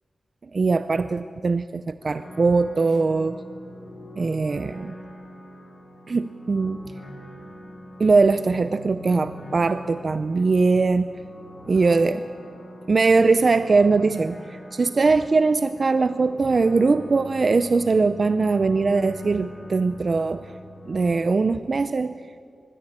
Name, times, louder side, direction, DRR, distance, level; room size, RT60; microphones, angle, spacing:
voice 1, 0.5-3.4 4.2-4.9 6.1-6.8 8.0-11.1 11.7-12.2 12.9-14.4 14.7-20.5 20.9-22.2, right 4 dB, 55° right, 12 dB, 0.5 m, -21 dB
sound 1, 2.0-21.2, equal, 65° left, 5.9 m, -43 dB
21.0 x 14.5 x 8.8 m, 2.1 s
wide cardioid pair, 75°, 0 cm